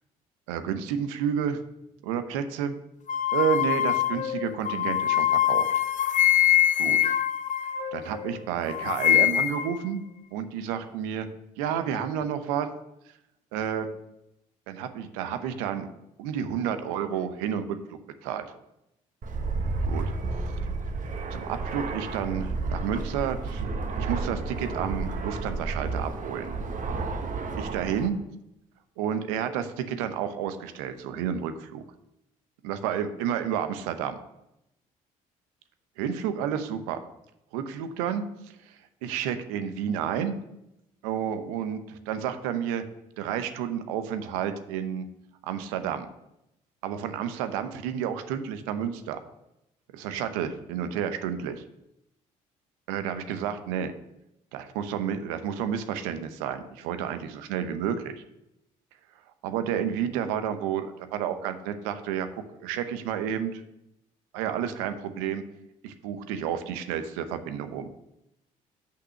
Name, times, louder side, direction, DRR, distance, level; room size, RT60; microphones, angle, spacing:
voice 1, 0.5-1.6 2.0-2.7 3.3-5.7 6.8-7.0 7.9-10.0 10.3-11.3 11.6-12.7 13.5-13.9 14.7-15.9 16.2-18.4 19.9-20.1 21.3-23.7 24.0-26.5 27.6-28.2 29.0-31.8 32.6-34.2 36.0-37.0 37.5-40.4 41.0-42.8 43.2-45.1 45.4-46.1 46.8-49.2 49.9-51.6 52.9-53.9 54.5-58.2 59.4-63.6 64.3-65.4 65.8-67.9, right 8 dB, 80° right, 9 dB, 0.8 m, -30 dB
sound 1, 3.1-8.4 8.7-9.8, left 11 dB, 45° left, 0.7 m, -24 dB
Fixed-wing aircraft airplane, 19.2-28.1, right 3 dB, 45° right, 1.3 m, -31 dB
6.1 x 5.9 x 6.5 m, 0.84 s
hypercardioid pair, 55°, 18 cm